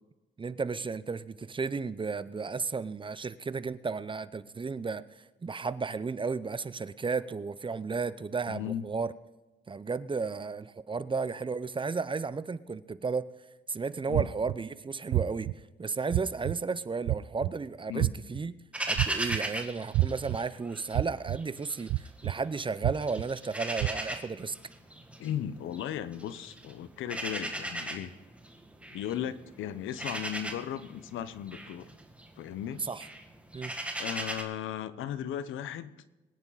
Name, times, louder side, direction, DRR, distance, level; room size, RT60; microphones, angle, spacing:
voice 1, 0.4-9.1 9.7-13.3 13.7-15.5 15.8-18.5 18.9-24.6 32.8-33.1 33.5-33.7, right 4 dB, 25° right, 15 dB, 0.7 m, -33 dB
voice 2, 8.5-8.8 14.1-14.3 17.9-18.1 25.2-28.1 28.9-31.9 32.4-32.8 34.0-35.9, left 10 dB, 85° left, 15 dB, 0.9 m, -36 dB
sound 1, 14.1-14.6 15.1-15.5 16.1-16.5 17.1-17.5 18.0-18.4 19.0-19.4 19.9-20.4 20.9-21.4 21.9-22.3 22.8-23.2 23.8-23.9, right 18 dB, 90° right, 0.4 m, -27 dB
sound 2, 18.7-21.0 21.3-22.6 22.9-34.4, right 1 dB, 5° right, 2.0 m, -38 dB
23.0 x 9.9 x 4.1 m, 1.2 s
cardioid pair, 90°, 20 cm